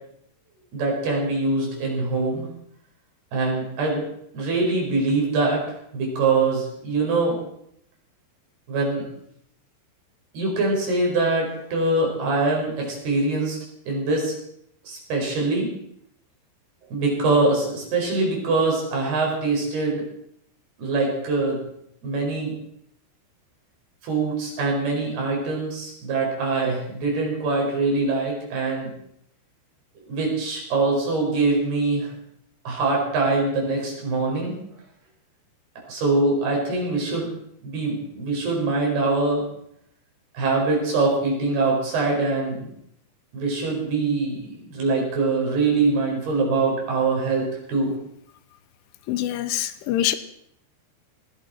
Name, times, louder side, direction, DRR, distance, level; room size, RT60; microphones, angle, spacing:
voice 1, 0.7-2.5 3.3-4.0 4.3-5.6 5.9-7.4 8.7-9.0 10.3-13.6 13.9-14.3 14.8-15.7 16.9-20.0 20.8-21.6 22.0-22.5 24.0-28.9 30.1-32.1 32.6-34.5 35.9-37.3 37.6-39.5 40.3-42.7 43.3-48.0, right 3 dB, 55° right, 0 dB, 6.7 m, -23 dB
voice 2, 49.1-50.2, left 12 dB, 90° left, 11 dB, 3.4 m, -24 dB
19.0 x 16.0 x 4.5 m, 0.71 s
omnidirectional pair, 5.5 m